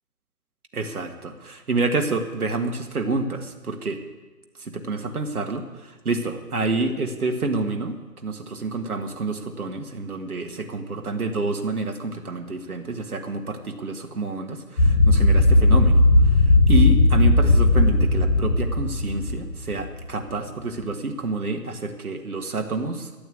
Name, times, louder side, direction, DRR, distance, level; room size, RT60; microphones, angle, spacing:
voice 1, 0.7-4.0 4.6-23.1, right 3 dB, 60° right, 5 dB, 1.8 m, -28 dB
sound 1, 14.8-19.9, left 2 dB, 75° left, 3.6 m, -17 dB
14.0 x 7.8 x 8.5 m, 1.2 s
figure-of-eight pair, 160°, 48 cm